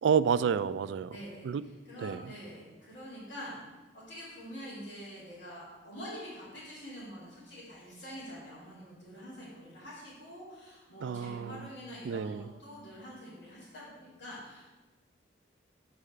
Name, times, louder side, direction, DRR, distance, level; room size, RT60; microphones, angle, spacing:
voice 1, 0.0-1.2 1.4-1.6 2.0-2.2 11.0-11.7 12.0-12.5, right 7 dB, 80° right, 16 dB, 0.3 m, -29 dB
voice 2, 1.1-14.7, equal, 90° left, -12 dB, 3.1 m, -46 dB
8.3 x 4.9 x 6.7 m, 1.2 s
head